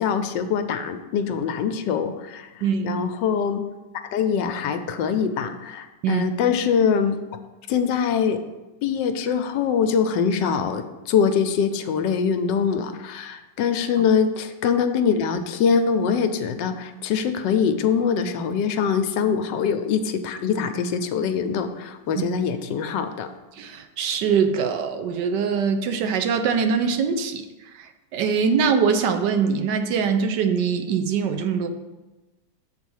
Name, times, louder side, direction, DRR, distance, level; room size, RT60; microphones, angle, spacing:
voice 1, 0.0-2.5 2.8-3.6 4.1-7.2 7.7-8.4 8.8-23.3, left 6 dB, 80° left, 8 dB, 1.2 m, -23 dB
voice 2, 2.6-3.0 6.0-6.3 22.2-22.3 23.6-27.5 27.7-31.7, right 6 dB, 75° right, 7 dB, 1.3 m, -23 dB
7.0 x 4.1 x 6.3 m, 1.1 s
omnidirectional pair, 2.0 m